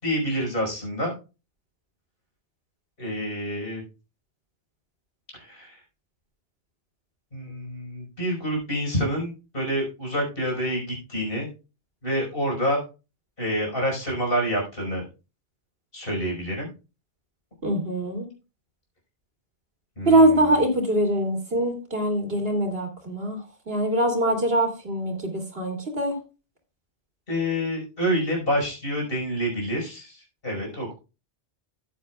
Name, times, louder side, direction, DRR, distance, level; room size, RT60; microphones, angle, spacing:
voice 1, 0.0-1.1 3.0-3.8 5.3-5.8 7.3-11.5 12.0-12.8 13.4-15.1 15.9-16.7 20.0-20.2 27.3-30.9, equal, 50° left, 0 dB, 5.7 m, -27 dB
voice 2, 17.6-18.3 20.1-26.2, right 1 dB, 55° right, 1 dB, 3.1 m, -23 dB
14.0 x 9.9 x 2.4 m, 0.31 s
omnidirectional pair, 1.2 m